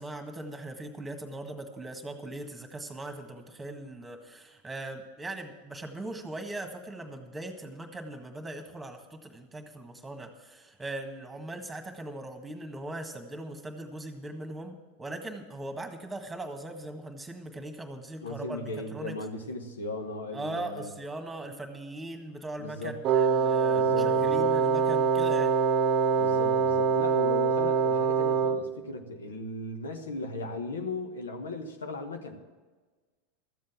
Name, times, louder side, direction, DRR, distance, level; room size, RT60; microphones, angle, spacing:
voice 1, 0.0-19.2 20.3-25.5, right 2 dB, 10° right, 5 dB, 1.7 m, -40 dB
voice 2, 18.2-20.9 22.6-23.0 23.7-24.5 26.1-32.4, left 2 dB, 80° left, 5 dB, 1.2 m, -37 dB
Wind instrument woodwind instrument, 23.0-28.8, right 5 dB, 40° right, 0.8 m, -24 dB
13.5 x 7.5 x 7.3 m, 1.3 s
hypercardioid pair, 90°, 0 cm